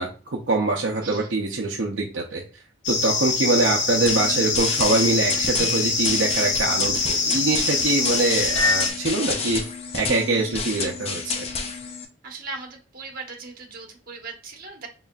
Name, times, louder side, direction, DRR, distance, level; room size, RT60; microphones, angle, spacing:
voice 1, 0.0-2.4 2.9-9.6 9.9-11.5, right 2 dB, 70° right, -1 dB, 0.6 m, -24 dB
sound 1, 2.8-8.9, left 4 dB, 65° left, 0.8 m, -24 dB
sound 2, 4.1-12.1, left 4 dB, 30° left, 0.6 m, -30 dB
voice 2, 12.2-14.9, right 4 dB, 50° right, 1 dB, 1.1 m, -38 dB
4.1 x 3.7 x 2.3 m, 0.34 s
head